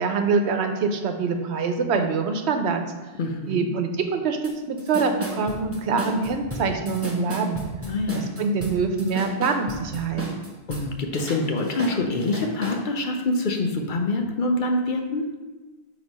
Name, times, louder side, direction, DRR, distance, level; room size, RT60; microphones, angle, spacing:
voice 1, 0.0-2.8 3.5-7.7 8.1-10.2, right 4 dB, 90° right, 6 dB, 1.0 m, -25 dB
voice 2, 3.2-3.6 7.8-8.3 10.7-15.3, left 2 dB, 55° left, 4 dB, 0.7 m, -25 dB
sound 1, 4.4-4.5 4.8-10.8 11.1-12.8, equal, 15° right, 0.8 m, -34 dB
6.2 x 3.0 x 5.2 m, 1.2 s
omnidirectional pair, 1.1 m